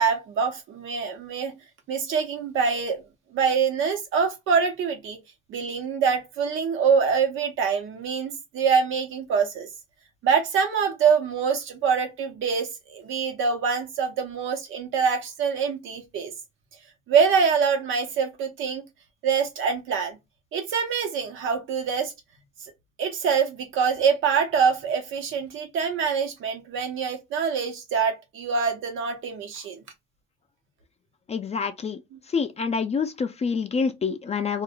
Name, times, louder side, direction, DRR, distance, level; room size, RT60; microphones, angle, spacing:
voice 1, 0.0-1.5 1.9-3.0 3.3-5.2 5.5-9.7 10.2-16.3 17.1-18.8 19.2-20.2 20.5-22.1 22.6-22.7 23.0-29.8, right 6 dB, 85° right, 0.9 m, -25 dB
voice 2, 31.3-32.0 32.3-34.6, left 5 dB, 35° left, 0.4 m, -27 dB
2.4 x 2.0 x 3.5 m
cardioid pair, 90°, 20 cm